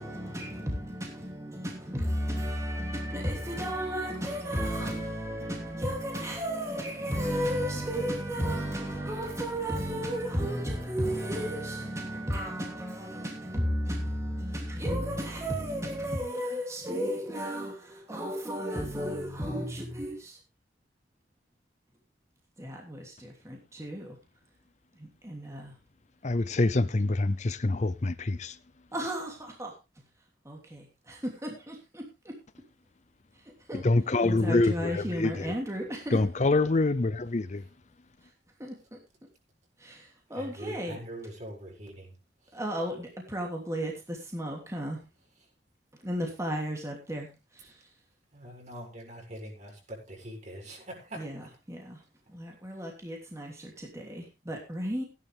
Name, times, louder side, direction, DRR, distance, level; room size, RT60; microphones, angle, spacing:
voice 1, 0.0-20.4 22.6-24.2 24.9-25.8 28.9-30.0 30.4-32.3 33.7-33.8 34.2-36.2 38.6-39.0 39.8-41.0 42.5-45.0 46.0-47.9 51.2-51.4 51.7-52.0 52.3-55.0, equal, 15° right, 3.0 m, -34 dB
voice 2, 26.2-28.6 33.7-35.5 36.1-37.6, left 2 dB, 40° left, 0.6 m, -26 dB
voice 3, 40.3-42.6 48.3-51.6, right 1 dB, 40° right, 6.9 m, -44 dB
16.0 x 11.0 x 3.5 m
head